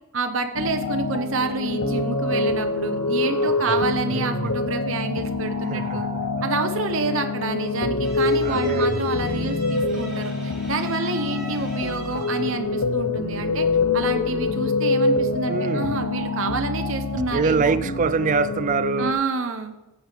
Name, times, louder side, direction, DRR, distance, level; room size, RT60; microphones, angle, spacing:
voice 1, 0.1-6.1 6.4-13.7 13.9-17.8 19.0-19.7, right 3 dB, 60° right, 0.9 m, -28 dB
sound 1, 0.5-19.1, left 3 dB, 85° left, 0.8 m, -25 dB
voice 2, 3.4-3.8 4.1-4.6 5.7-6.3 8.4-9.1 15.5-16.0 17.3-19.2, right 5 dB, 35° right, 0.3 m, -25 dB
Bowed string instrument, 8.0-12.6, right 1 dB, 5° right, 2.9 m, -41 dB
14.5 x 8.0 x 3.5 m
head